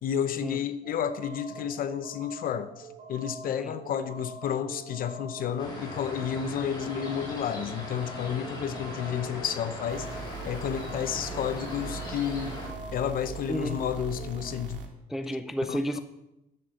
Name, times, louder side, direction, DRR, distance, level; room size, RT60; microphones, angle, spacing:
voice 1, 0.0-12.6 12.9-14.8 15.7-15.8, left 9 dB, 45° left, 12 dB, 0.8 m, -31 dB
sound 1, 0.8-14.6, right 4 dB, 35° right, 3.4 m, -45 dB
sound 2, 5.6-12.7, left 1 dB, 20° left, 3.7 m, -40 dB
sound 3, 9.9-14.9, right 5 dB, 70° right, 2.0 m, -41 dB
voice 2, 13.5-13.8 15.1-16.0, equal, ahead, 9 dB, 0.4 m, -31 dB
10.5 x 7.8 x 7.0 m, 0.93 s
cardioid pair, 155°, 20 cm